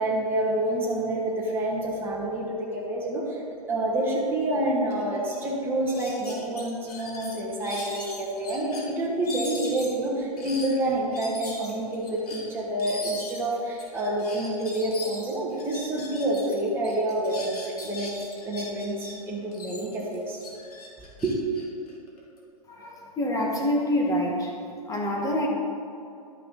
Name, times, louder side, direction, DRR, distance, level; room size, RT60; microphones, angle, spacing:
voice 1, 0.0-3.4 3.7-18.1 18.4-20.4 21.2-21.4, right 1 dB, 10° right, -6 dB, 1.7 m, -28 dB
sound 1, 4.9-5.0 5.3-5.5 5.9-8.8 9.2-16.5 16.8-19.1 19.5-22.4, left 2 dB, 75° left, 1.9 m, -40 dB
voice 2, 22.7-24.6 24.8-25.5, left 1 dB, 15° left, -1 dB, 1.6 m, -26 dB
12.0 x 5.5 x 4.0 m, 2.6 s
hypercardioid pair, 110°, 20 cm